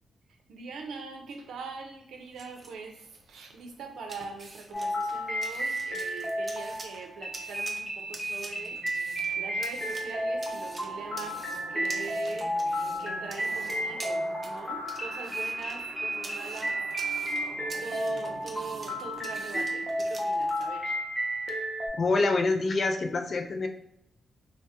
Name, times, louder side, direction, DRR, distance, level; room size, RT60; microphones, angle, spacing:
voice 1, 0.3-8.8 9.4-11.4 11.7-12.5 13.0-16.8 17.8-21.0, right 4 dB, 90° right, 4 dB, 0.5 m, -42 dB
sound 1, 2.1-20.7, right 2 dB, 35° right, 0.5 m, -48 dB
sound 2, 4.7-21.9, equal, 10° left, 0.8 m, -32 dB
sound 3, 8.0-20.7, right 1 dB, 55° right, 0.9 m, -47 dB
voice 2, 22.0-23.7, left 3 dB, 45° left, 5 dB, 0.4 m, -26 dB
3.3 x 2.0 x 2.8 m, 0.79 s
cardioid pair, 120°, 0 cm